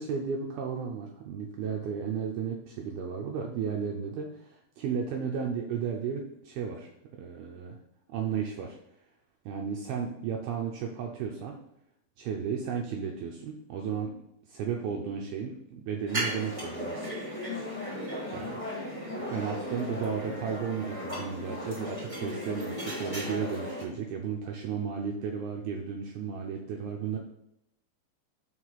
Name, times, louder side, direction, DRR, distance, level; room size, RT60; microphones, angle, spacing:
voice 1, 0.0-6.9 7.2-7.8 8.1-8.8 9.5-11.6 12.2-17.1 18.3-18.6 19.3-27.2, right 6 dB, 85° right, 1 dB, 2.2 m, -34 dB
sound 1, 16.1-23.8, equal, 15° right, 1.3 m, -36 dB
6.1 x 4.8 x 5.8 m, 0.83 s
omnidirectional pair, 5.1 m